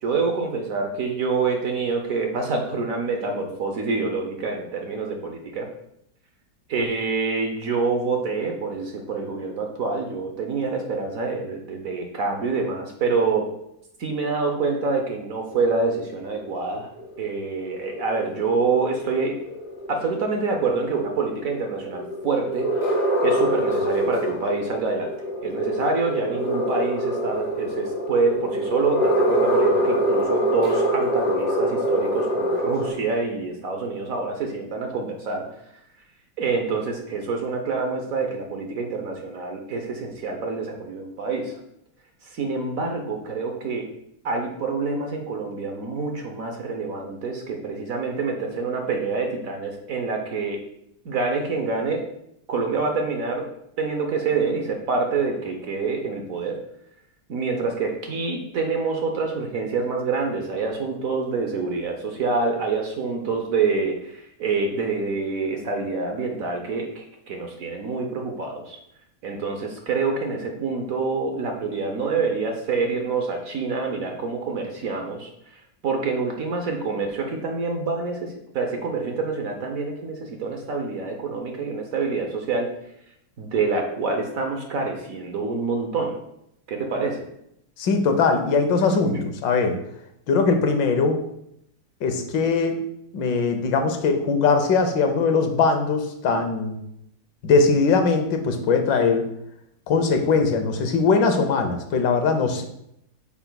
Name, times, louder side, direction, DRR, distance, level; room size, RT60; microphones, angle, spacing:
voice 1, 0.0-5.7 6.7-13.5 14.0-16.9 17.2-19.4 19.9-22.7 23.2-25.1 25.4-35.5 36.4-41.6 42.2-43.9 44.2-50.6 51.0-52.0 52.5-53.5 53.8-56.6 57.3-68.8 69.2-82.7 83.4-86.2 86.7-87.2 89.1-89.2, right 4 dB, 60° right, 3 dB, 1.0 m, -26 dB
sound 1, 15.5-32.9, equal, 40° left, 2.3 m, -25 dB
voice 2, 87.8-89.8 90.3-91.2 92.0-92.8 93.1-96.8 97.4-99.3 99.9-102.6, left 4 dB, 80° left, 6 dB, 1.5 m, -21 dB
8.6 x 5.9 x 2.2 m, 0.77 s
omnidirectional pair, 2.0 m